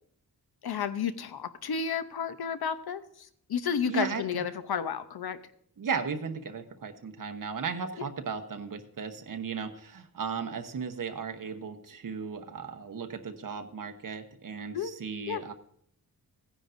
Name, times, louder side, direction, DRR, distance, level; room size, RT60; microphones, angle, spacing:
voice 1, 0.6-5.4 8.0-8.1 14.7-14.9 15.3-15.4, left 7 dB, 85° left, 11 dB, 0.8 m, -32 dB
voice 2, 3.9-4.4 5.8-15.5, right 6 dB, 60° right, 6 dB, 1.1 m, -36 dB
17.0 x 10.0 x 2.6 m, 0.68 s
wide cardioid pair, 165°, 37 cm